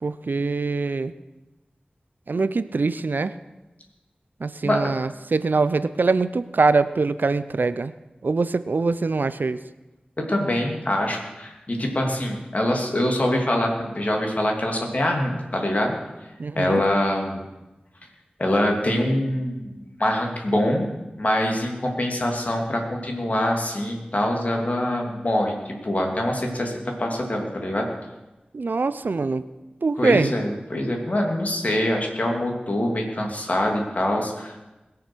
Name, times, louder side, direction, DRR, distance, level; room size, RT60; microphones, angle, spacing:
voice 1, 0.0-1.1 2.3-3.3 4.4-7.9 8.2-9.6 16.4-16.8 28.5-29.4 29.8-30.3, right 3 dB, 75° right, 14 dB, 0.6 m, -23 dB
voice 2, 4.6-4.9 10.2-16.0 16.5-17.4 18.4-20.8 21.2-26.7 27.0-27.9 30.0-34.6, left 1 dB, 50° left, 1 dB, 2.8 m, -24 dB
21.0 x 7.0 x 6.3 m, 1.1 s
wide cardioid pair, 60°, 3 cm